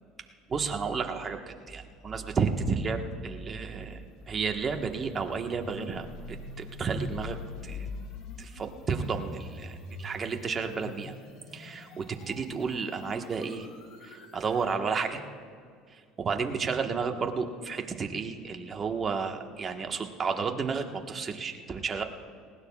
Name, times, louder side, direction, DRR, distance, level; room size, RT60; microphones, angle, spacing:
voice 1, 0.5-4.0 4.3-7.4 7.6-7.9 8.4-11.1 11.5-13.7 14.0-15.2 15.9-22.0, right 5 dB, 30° right, 4 dB, 1.3 m, -32 dB
sound 1, 2.6-14.8, left 3 dB, 65° left, 2.7 m, -45 dB
19.5 x 18.5 x 2.4 m, 2.1 s
supercardioid pair, 95°, 0 cm